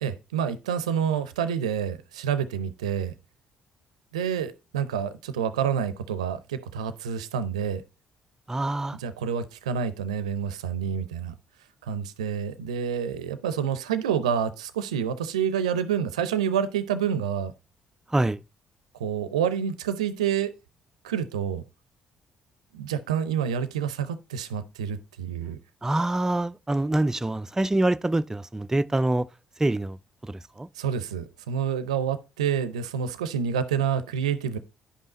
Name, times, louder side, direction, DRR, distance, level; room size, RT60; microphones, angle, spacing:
voice 1, 0.0-3.1 4.1-7.8 9.0-11.3 11.8-17.5 19.0-20.5 21.0-21.6 22.7-25.6 30.8-34.6, right 8 dB, 85° right, 0.5 m, -28 dB
voice 2, 8.5-9.0 18.1-18.4 25.8-29.3 29.6-30.0 30.2-30.7, right 2 dB, 15° right, 0.4 m, -25 dB
10.0 x 5.5 x 4.0 m
hypercardioid pair, 50°, 3 cm